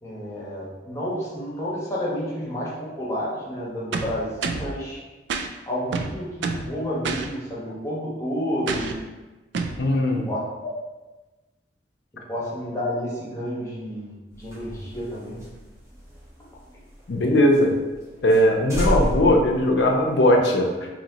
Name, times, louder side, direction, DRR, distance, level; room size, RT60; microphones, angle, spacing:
voice 1, 0.0-5.0 5.7-9.0 9.9-10.7 12.3-15.4, equal, 15° left, -7 dB, 1.1 m, -30 dB
sound 1, 3.9-4.7 5.3-5.5 5.9-6.7 7.0-7.3 8.7-9.0 9.5-9.8, right 4 dB, 80° right, 0.3 m, -28 dB
voice 2, 9.8-10.3 17.1-17.7 18.2-20.9, left 1 dB, 75° left, 1 dB, 0.6 m, -19 dB
sound 2, 14.3-17.2 17.5-17.6 17.9-18.0 18.3-18.4 18.7-20.4, equal, 15° right, 0.9 m, -30 dB
4.1 x 2.8 x 2.8 m, 1.2 s
head